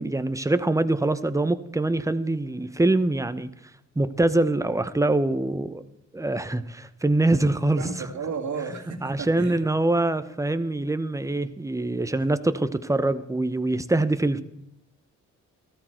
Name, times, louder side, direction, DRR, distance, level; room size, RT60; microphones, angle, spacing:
voice 1, 0.0-3.5 4.0-5.8 6.1-7.9 9.0-14.4, right 2 dB, 10° right, 12 dB, 0.9 m, -24 dB
voice 2, 7.8-9.6 12.2-12.3, right 5 dB, 65° right, 3 dB, 2.1 m, -33 dB
13.5 x 13.5 x 4.5 m, 0.80 s
supercardioid pair, 60°, 32 cm